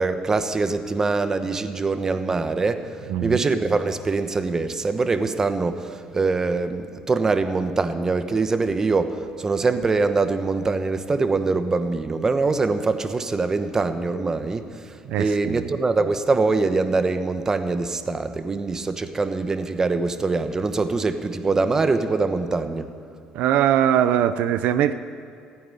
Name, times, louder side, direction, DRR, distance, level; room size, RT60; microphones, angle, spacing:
voice 1, 0.0-2.9 3.2-14.7 15.2-22.9, right 3 dB, 25° right, 10 dB, 1.0 m, -23 dB
voice 2, 3.1-3.4 15.0-15.6 23.3-24.9, right 10 dB, 75° right, 12 dB, 0.6 m, -21 dB
15.5 x 9.4 x 9.9 m, 2.4 s
cardioid pair, 110°, 2 cm